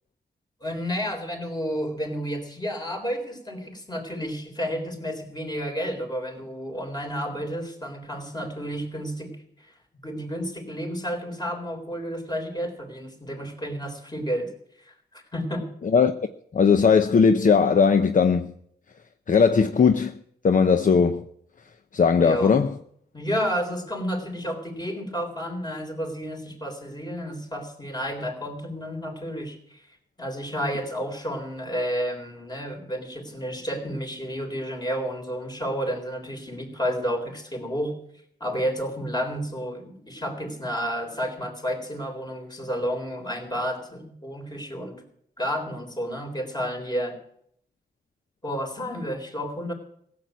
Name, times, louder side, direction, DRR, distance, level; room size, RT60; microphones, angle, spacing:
voice 1, 0.6-9.7 10.0-14.5 14.8-15.7 22.2-22.6 23.1-38.0 38.4-45.0 45.4-47.2 48.4-49.7, equal, 25° left, 3.9 m, -31 dB
voice 2, 16.5-18.5 19.3-20.1 20.4-21.2 21.9-22.7, left 5 dB, 50° left, 0.7 m, -18 dB
16.0 x 7.8 x 9.3 m
cardioid pair, 80°, 17 cm